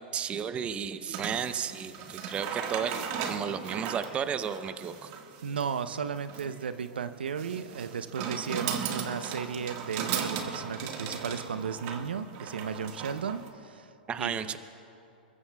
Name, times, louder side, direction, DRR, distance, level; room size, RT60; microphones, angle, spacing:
voice 1, 0.0-5.1 14.1-14.6, right 7 dB, 20° right, 11 dB, 0.7 m, -33 dB
sound 1, 1.1-13.5, right 7 dB, 45° right, 1.6 m, -37 dB
voice 2, 5.4-13.9 14.2-14.5, right 6 dB, 85° right, 11 dB, 0.7 m, -34 dB
28.0 x 14.5 x 2.3 m, 2.7 s
hypercardioid pair, 120°, 5 cm